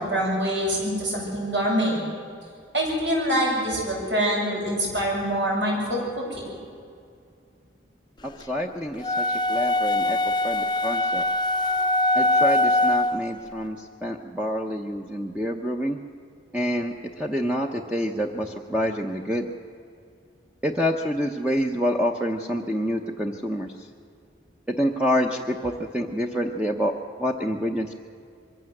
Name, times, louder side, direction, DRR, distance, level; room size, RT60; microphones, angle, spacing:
voice 1, 0.0-2.0 2.7-6.4, equal, 75° right, -3 dB, 7.9 m, -25 dB
voice 2, 8.2-11.2 12.2-16.0 16.5-19.5 20.6-23.7 24.7-26.9 27.2-27.9, equal, 5° right, 1 dB, 0.8 m, -27 dB
sound 1, 9.0-13.3, left 2 dB, 25° left, 0.6 m, -22 dB
23.0 x 15.5 x 7.8 m, 2.3 s
head